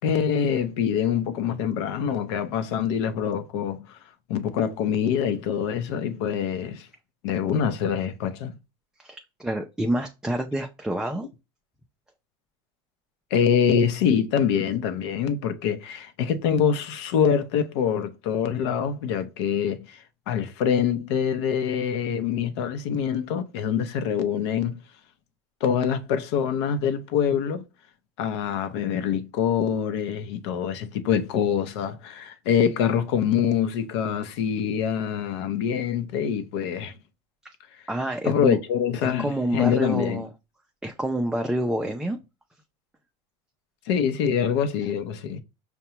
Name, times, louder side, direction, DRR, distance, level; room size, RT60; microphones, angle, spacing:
voice 1, 0.0-4.0 4.3-6.9 7.2-8.6 13.3-24.8 25.6-27.6 28.2-36.9 38.2-40.2 43.9-45.4, left 8 dB, 70° left, 0.7 m, -25 dB
voice 2, 9.0-11.3 37.9-38.6 39.0-40.3 40.8-42.2, right 1 dB, 5° right, 0.4 m, -28 dB
5.5 x 2.2 x 2.9 m
supercardioid pair, 130°, 14 cm